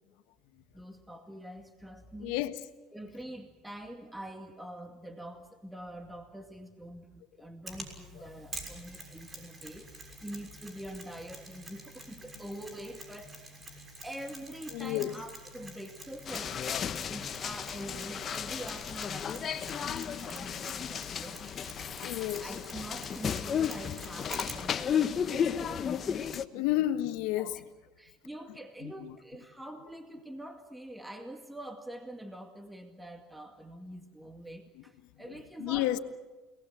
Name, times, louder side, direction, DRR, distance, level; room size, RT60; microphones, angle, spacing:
voice 1, 0.7-2.4 2.9-13.6 14.0-16.7 17.0-21.5 22.4-26.2 27.4-27.6 28.0-36.0, right 1 dB, 5° right, 2.2 m, -45 dB
voice 2, 2.2-2.6 14.7-15.1 19.9-20.0 22.0-22.5 26.5-27.6 28.8-28.9 35.6-36.0, left 14 dB, 75° left, 1.3 m, -30 dB
Mechanisms, 7.7-24.8, right 2 dB, 25° right, 6.5 m, -48 dB
sound 1, 16.3-26.5, left 8 dB, 40° left, 1.3 m, -34 dB
30.0 x 20.0 x 7.7 m
supercardioid pair, 80°, 0 cm